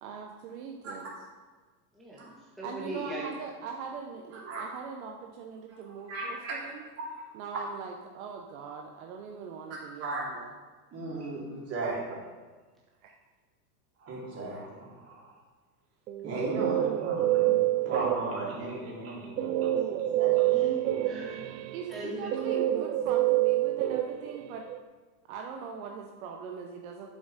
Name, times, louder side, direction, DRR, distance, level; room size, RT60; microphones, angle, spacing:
voice 1, 0.0-1.1 2.6-6.8 7.3-10.5 13.0-13.1 21.7-24.7 25.3-27.1, right 6 dB, 60° right, 2 dB, 1.0 m, -41 dB
voice 2, 1.9-3.3 20.4-21.5 21.9-22.5, right 1 dB, ahead, -7 dB, 1.3 m, -39 dB
voice 3, 4.3-4.6 6.1-6.6 7.0-7.1 10.0-10.2 10.9-12.3 14.0-15.4 16.2-20.6, right 2 dB, 30° right, -5 dB, 3.1 m, -36 dB
Guitar, 16.1-18.6 19.4-24.8, right 14 dB, 90° right, 0.7 m, -27 dB
8.6 x 7.2 x 4.2 m, 1.4 s
supercardioid pair, 145°, 48 cm